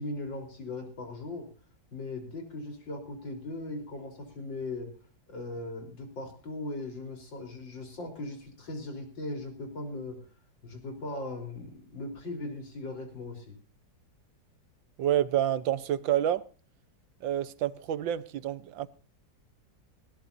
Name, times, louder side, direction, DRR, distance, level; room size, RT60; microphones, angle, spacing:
voice 1, 0.0-1.5 1.9-4.9 5.3-10.2 10.6-13.6, left 2 dB, 80° left, 4.6 m, -39 dB
voice 2, 15.0-16.4 17.2-18.9, right 11 dB, 85° right, 1.6 m, -28 dB
20.0 x 17.5 x 2.7 m
omnidirectional pair, 2.0 m